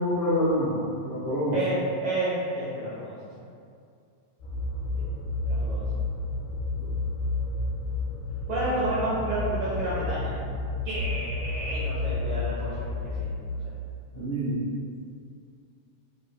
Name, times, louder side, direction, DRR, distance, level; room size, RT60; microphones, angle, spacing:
voice 1, 0.0-1.6 6.8-6.9 14.1-14.6, equal, 45° left, -14 dB, 1.4 m, -27 dB
voice 2, 1.5-3.5 5.5-5.9 8.5-10.4 10.8-13.0, right 1 dB, 75° right, -8 dB, 1.5 m, -30 dB
sound 1, 4.4-13.2, left 2 dB, 75° left, 1.8 m, -31 dB
4.8 x 2.7 x 3.4 m, 2.3 s
omnidirectional pair, 3.5 m